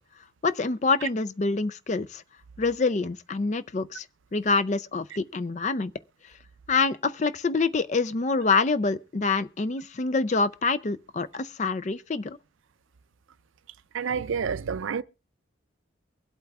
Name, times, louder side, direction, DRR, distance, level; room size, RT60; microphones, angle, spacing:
voice 1, 0.4-2.2 2.6-4.1 4.3-5.9 6.7-12.4, left 4 dB, 35° left, 0.4 m, -26 dB
voice 2, 13.9-15.0, right 6 dB, 85° right, 0.5 m, -28 dB
23.5 x 8.1 x 2.4 m
head